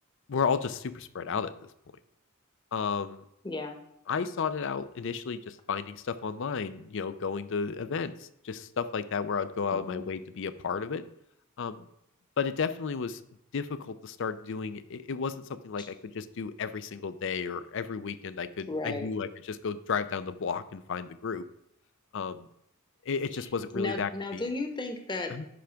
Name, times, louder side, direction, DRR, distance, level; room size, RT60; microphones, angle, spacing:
voice 1, 0.3-1.5 2.7-3.2 4.1-11.0 11.6-11.9 12.4-13.2 13.5-21.4 22.1-22.5 23.1-24.4 25.3-25.4, left 5 dB, 60° left, 13 dB, 0.5 m, -33 dB
voice 2, 3.4-3.8 9.7-10.0 15.8-15.9 18.7-19.1 23.4-23.5 23.7-25.3, left 2 dB, 20° left, 5 dB, 0.9 m, -34 dB
10.0 x 3.5 x 5.8 m, 0.77 s
head